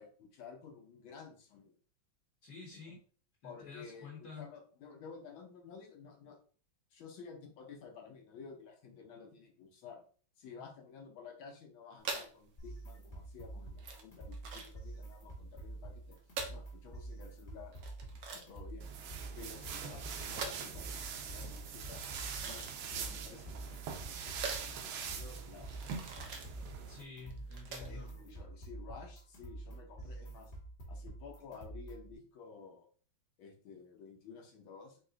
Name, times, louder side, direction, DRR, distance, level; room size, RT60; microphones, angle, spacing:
voice 1, 0.0-1.7 2.7-2.8 3.4-6.4 6.9-10.0 10.4-16.2 16.5-17.8 18.3-18.9 19.4-22.1 22.4-25.9 27.8-30.5 30.9-32.9 33.4-35.0, left 5 dB, 80° left, 2 dB, 1.7 m, -53 dB
voice 2, 2.4-3.0 3.4-4.4 26.9-28.1, left 5 dB, 55° left, -3 dB, 1.5 m, -49 dB
sound 1, 12.0-28.1, right 4 dB, 65° right, 0.9 m, -46 dB
sound 2, 12.6-32.1, right 2 dB, 35° left, 0.8 m, -47 dB
sound 3, 18.8-27.0, right 6 dB, 90° right, 1.5 m, -43 dB
4.7 x 2.2 x 3.8 m, 0.42 s
omnidirectional pair, 2.2 m